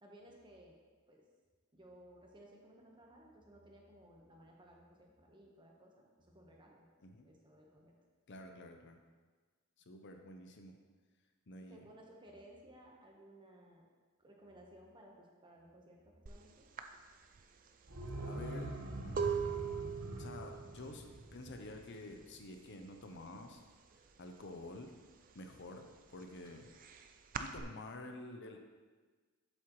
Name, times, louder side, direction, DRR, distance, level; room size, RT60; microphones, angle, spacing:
voice 1, 0.0-0.8 1.1-1.2 1.7-6.1 6.3-6.9 7.2-7.9 11.7-13.9 14.2-16.7, right 1 dB, 20° right, -1 dB, 1.1 m, -59 dB
voice 2, 8.3-9.0 9.9-10.7 11.5-11.9 18.2-18.7 19.0-19.5 20.2-23.6 24.2-24.9 25.3-26.7 27.4-28.6, left 2 dB, 55° left, 4 dB, 0.7 m, -49 dB
sound 1, 16.3-16.4 16.8-22.5 22.7-23.2 23.5-24.6 25.0-27.6, right 7 dB, 40° right, 0.4 m, -41 dB
sound 2, 17.8-22.6 22.9-23.0, right 1 dB, 90° right, 1.3 m, -45 dB
7.7 x 7.5 x 3.1 m, 1.4 s
head